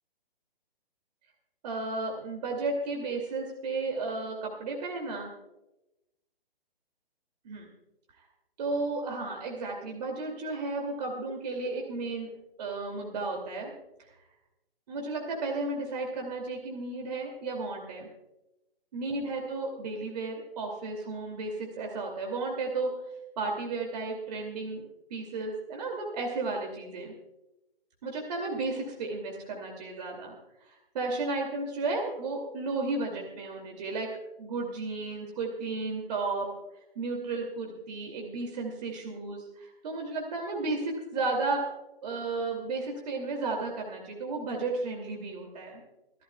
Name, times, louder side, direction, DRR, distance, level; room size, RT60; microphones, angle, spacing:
voice 1, 1.6-5.3 7.4-7.7 8.6-12.3 12.6-13.7 14.9-18.1 18.9-22.9 23.4-24.8 25.1-27.1 28.0-30.3 30.6-34.1 34.4-36.5 36.9-41.6 42.0-45.8, right 3 dB, 40° right, 1 dB, 2.6 m, -33 dB
26.5 x 12.0 x 2.3 m, 0.95 s
figure-of-eight pair, 140°, 30 cm